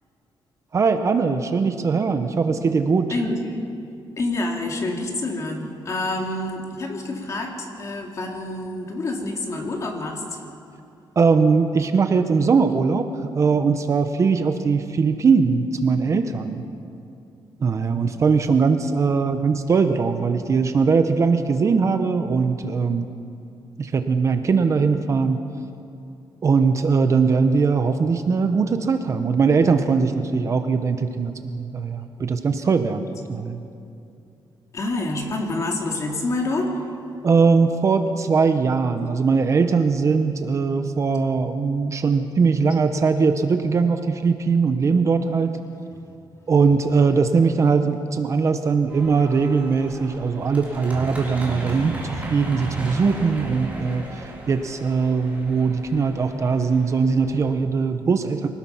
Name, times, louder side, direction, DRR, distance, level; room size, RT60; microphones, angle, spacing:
voice 1, 0.7-3.1 11.2-16.6 17.6-23.1 23.8-25.4 26.4-33.0 33.3-33.6 37.2-45.6 46.5-58.5, right 5 dB, 35° right, 8 dB, 0.9 m, -20 dB
voice 2, 3.1-3.6 4.2-10.4 34.7-36.8, left 2 dB, 35° left, 2 dB, 2.5 m, -27 dB
sound 1, 48.9-57.5, right 2 dB, 15° right, 3.7 m, -36 dB
24.5 x 19.0 x 5.7 m, 2.5 s
wide cardioid pair, 165°, 9 cm